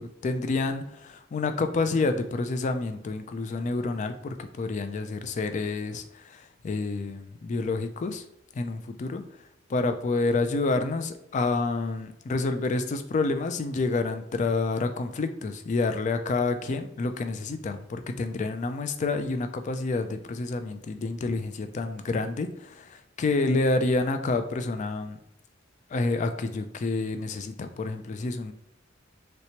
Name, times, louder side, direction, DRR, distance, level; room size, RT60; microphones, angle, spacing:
voice 1, 0.0-8.2 8.5-9.2 9.7-25.2 25.9-28.5, left 3 dB, 40° left, 7 dB, 0.3 m, -28 dB
3.2 x 2.9 x 2.8 m, 0.81 s
head